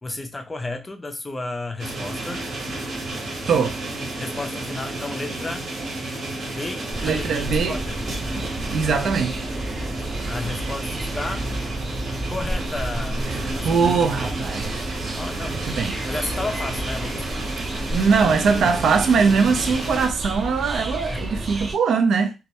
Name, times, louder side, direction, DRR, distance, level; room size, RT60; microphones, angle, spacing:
voice 1, 0.0-2.5 4.2-5.7 6.5-8.0 9.8-11.5 12.3-14.6 15.1-15.6 16.1-17.6 18.2-18.8 21.1-21.3, left 2 dB, 20° left, 0.4 m, -33 dB
sound 1, 1.8-20.1, right 2 dB, 65° right, 0.9 m, -31 dB
sound 2, 6.9-21.7, right 1 dB, 40° right, 0.6 m, -31 dB
voice 2, 7.0-7.8 8.7-9.5 13.4-15.0 15.7-16.0 17.9-22.3, right 5 dB, 80° right, 0.4 m, -21 dB
2.2 x 2.1 x 2.8 m
wide cardioid pair, 150°, 0 cm